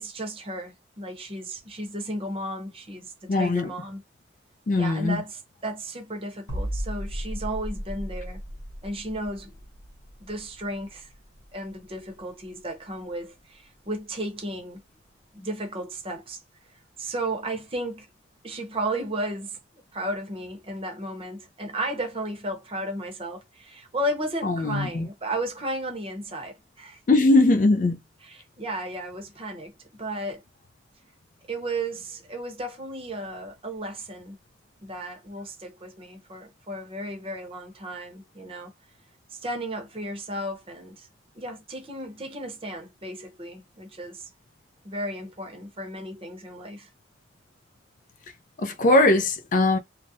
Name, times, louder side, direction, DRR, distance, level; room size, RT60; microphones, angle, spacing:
voice 1, 0.0-4.0 4.7-8.4 8.8-9.5 10.2-11.1 11.5-14.8 15.3-16.4 17.0-18.1 18.4-19.6 19.9-27.0 28.2-29.7 30.0-30.4 31.5-34.4 34.8-38.7 39.3-41.1 41.3-44.3 44.8-46.9, right 1 dB, 30° right, 0.7 m, -34 dB
voice 2, 3.3-3.7 4.7-5.2 24.4-25.1 27.1-28.0 48.6-49.8, left 2 dB, 45° left, 0.4 m, -20 dB
sound 1, 6.5-12.2 12.4-12.7, equal, 75° left, 0.8 m, -36 dB
2.4 x 2.0 x 2.6 m
head